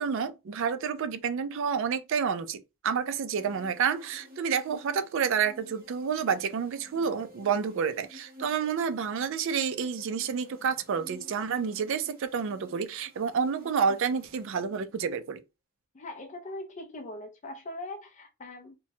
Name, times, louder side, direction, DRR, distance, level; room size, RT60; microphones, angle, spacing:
voice 1, 0.0-15.4, right 6 dB, 60° right, 0.4 m, -29 dB
sound 1, 3.3-15.1, left 1 dB, 45° right, 0.9 m, -53 dB
voice 2, 15.9-18.8, left 1 dB, 35° left, 0.4 m, -41 dB
2.9 x 2.1 x 2.7 m
head